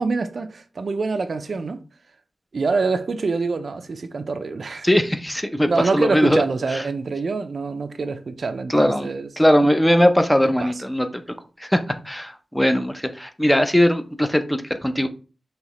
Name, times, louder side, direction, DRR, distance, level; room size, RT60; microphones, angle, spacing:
voice 1, 0.0-1.8 2.5-4.9 5.7-9.3 10.4-10.7, right 4 dB, 60° right, 0.5 m, -25 dB
voice 2, 4.8-6.4 6.7-6.8 8.7-9.1 9.4-11.2 11.6-11.8 12.0-15.1, equal, 5° left, 0.5 m, -19 dB
5.7 x 3.1 x 3.0 m
wide cardioid pair, 95°, 0 cm